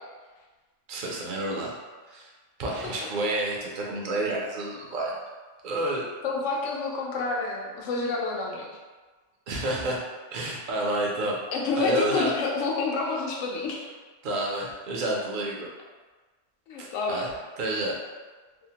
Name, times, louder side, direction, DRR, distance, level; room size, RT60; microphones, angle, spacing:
voice 1, 0.9-1.8 2.0-2.3 2.6-5.2 5.6-6.0 9.5-10.0 10.3-11.4 11.8-12.3 14.2-15.7 16.8-17.9, right 1 dB, 55° right, -3 dB, 0.6 m, -29 dB
voice 2, 6.2-8.7 11.5-13.9 16.7-17.3, left 3 dB, 75° left, -1 dB, 0.9 m, -29 dB
2.7 x 2.0 x 2.8 m, 1.3 s
omnidirectional pair, 1.3 m